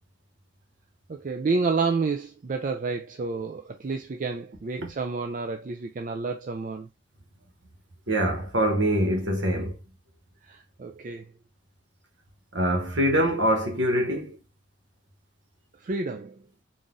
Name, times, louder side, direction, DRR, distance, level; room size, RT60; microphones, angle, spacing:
voice 1, 1.1-6.9 10.4-11.3 15.8-16.5, right 4 dB, 40° right, 0.4 m, -30 dB
voice 2, 8.1-9.8 12.5-14.4, equal, 70° right, 1.2 m, -24 dB
4.0 x 2.5 x 3.7 m
head